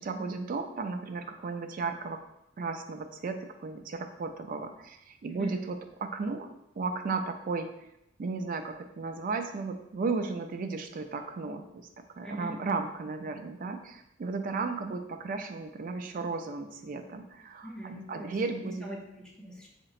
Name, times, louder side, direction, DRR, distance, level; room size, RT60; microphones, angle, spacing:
voice 1, 0.0-2.2 2.6-6.5 6.8-7.7 8.2-11.9 12.2-18.9, right 4 dB, 45° right, 6 dB, 0.3 m, -35 dB
voice 2, 12.2-12.5 17.6-18.4 18.6-19.7, right 1 dB, 5° left, -4 dB, 0.7 m, -41 dB
4.1 x 2.9 x 2.4 m, 0.82 s
head